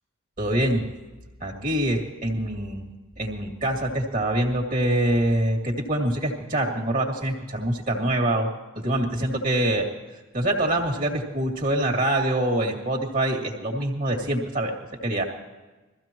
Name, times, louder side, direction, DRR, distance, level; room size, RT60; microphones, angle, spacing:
voice 1, 0.4-0.9 1.4-2.8 3.2-8.5 8.8-9.9 10.3-14.7 15.0-15.2, right 1 dB, 40° right, 1 dB, 2.3 m, -25 dB
22.0 x 15.5 x 3.0 m, 1.2 s
head